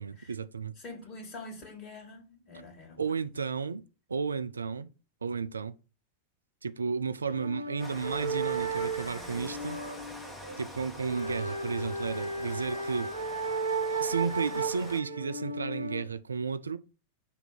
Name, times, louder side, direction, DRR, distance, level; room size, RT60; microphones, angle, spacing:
voice 1, 0.0-0.8 3.0-3.8 4.1-4.9 5.2-5.7 6.6-9.8 10.6-13.1 14.0-16.8, right 5 dB, 75° right, 0.3 m, -33 dB
voice 2, 0.8-3.3, left 2 dB, 35° left, 2.3 m, -45 dB
sound 1, 7.2-16.0, right 3 dB, 90° left, 0.9 m, -34 dB
Rain, 7.8-15.0, left 1 dB, 10° left, 1.4 m, -46 dB
6.9 x 2.7 x 5.8 m
figure-of-eight pair, 90°, 0 cm